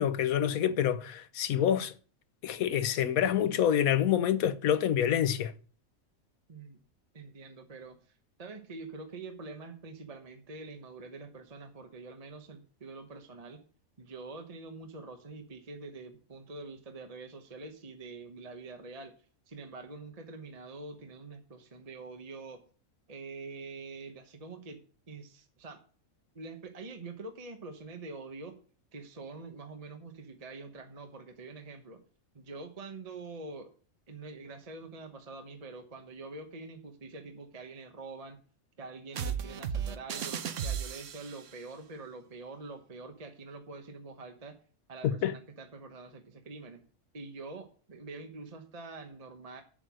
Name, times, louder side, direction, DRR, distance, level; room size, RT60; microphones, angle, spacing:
voice 1, 0.0-1.9 2.4-5.5 45.2-45.3, left 10 dB, 85° left, 1.2 m, -27 dB
voice 2, 7.1-8.0 8.4-13.6 14.0-19.1 19.5-22.6 23.1-25.8 26.3-28.6 28.9-32.0 32.3-33.7 34.1-38.4 38.8-44.6 44.9-46.8 47.1-49.6, right 3 dB, 30° right, 1.1 m, -45 dB
sound 1, 39.1-41.5, right 7 dB, 65° right, 1.1 m, -35 dB
8.9 x 7.5 x 6.2 m
omnidirectional pair, 1.4 m